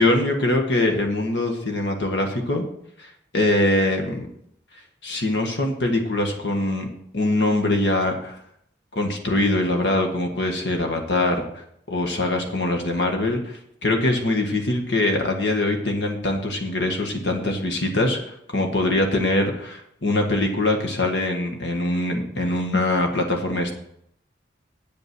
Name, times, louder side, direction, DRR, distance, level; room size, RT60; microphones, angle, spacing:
voice 1, 0.0-2.7 3.0-4.3 5.0-6.9 7.1-8.4 8.9-23.7, left 2 dB, 80° left, 3 dB, 1.7 m, -23 dB
9.0 x 8.5 x 6.1 m, 0.71 s
head